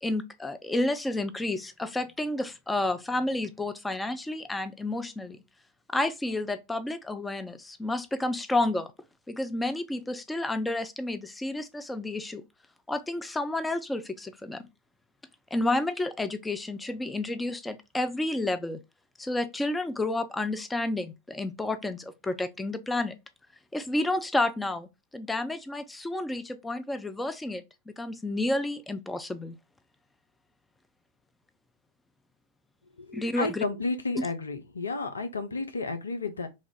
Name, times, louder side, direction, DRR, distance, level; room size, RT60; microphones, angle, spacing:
voice 1, 0.0-5.4 5.9-8.9 9.3-12.4 12.9-14.6 15.5-18.8 19.2-23.2 23.7-29.6 33.1-33.6, left 2 dB, 10° left, 0.3 m, -30 dB
voice 2, 33.0-36.5, left 3 dB, 75° left, 0.5 m, -32 dB
3.1 x 2.4 x 3.7 m
figure-of-eight pair, 90°, 0 cm